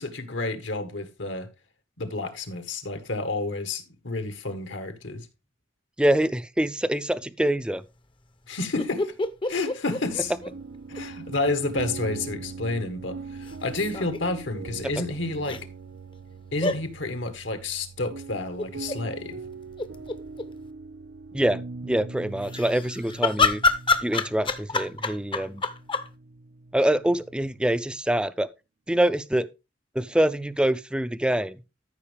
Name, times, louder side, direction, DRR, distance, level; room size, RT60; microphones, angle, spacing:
voice 1, 0.0-1.5 2.0-5.3 8.5-9.1 9.5-10.3 10.9-15.6 16.5-19.4, left 2 dB, 75° left, 1.6 m, -30 dB
voice 2, 6.0-7.8 15.0-15.1 21.3-23.6 24.0-25.6 26.7-28.5 28.9-29.5 29.9-31.6, right 1 dB, 5° right, 0.4 m, -25 dB
sound 1, 8.8-11.0 11.3-11.4 13.5-14.2 15.4-15.6 16.6-16.8 18.6-19.0 19.5-19.6 19.7-20.5 22.4-26.1, left 3 dB, 25° left, 0.7 m, -27 dB
sound 2, 10.1-27.9, right 4 dB, 65° right, 0.5 m, -41 dB
13.0 x 5.5 x 3.4 m
head